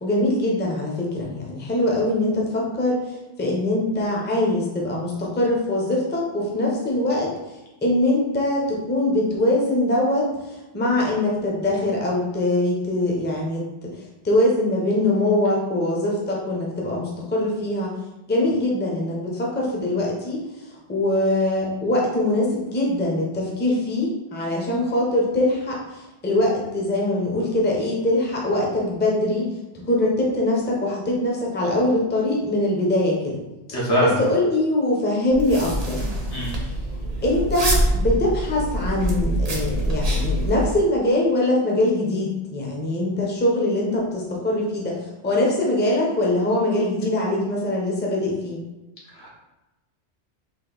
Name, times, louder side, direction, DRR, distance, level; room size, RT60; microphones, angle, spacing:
voice 1, 0.0-3.0 3.4-7.3 7.8-10.3 10.7-13.9 14.2-18.0 18.3-20.4 20.9-29.5 29.9-33.4 34.0-36.0 37.2-45.0 45.2-48.6, left 1 dB, 10° left, -2 dB, 0.5 m, -22 dB
voice 2, 33.7-34.2 36.3-36.6 49.1-49.3, left 1 dB, 85° left, -5 dB, 1.4 m, -23 dB
sound 1, 35.3-40.7, right 1 dB, 40° right, 0.7 m, -25 dB
3.7 x 2.5 x 3.8 m, 1.0 s
omnidirectional pair, 1.2 m